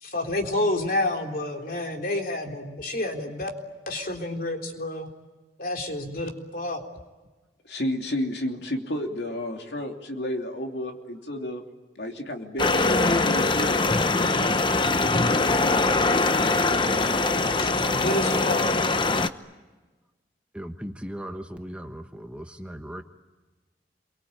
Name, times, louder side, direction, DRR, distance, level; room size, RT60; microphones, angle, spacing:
voice 1, 0.0-3.5 3.9-5.1 5.6-6.8 17.6-18.6, left 1 dB, 55° left, 3 dB, 3.9 m, -29 dB
voice 2, 7.6-11.6 12.0-13.8 14.2-14.6 15.1-15.8 16.5-16.9, left 1 dB, 70° left, 3 dB, 2.9 m, -32 dB
sound 1, 12.6-19.3, left 3 dB, 30° left, 0.9 m, -22 dB
voice 3, 20.5-23.0, equal, 5° right, 5 dB, 1.2 m, -37 dB
28.0 x 23.5 x 8.9 m, 1.2 s
head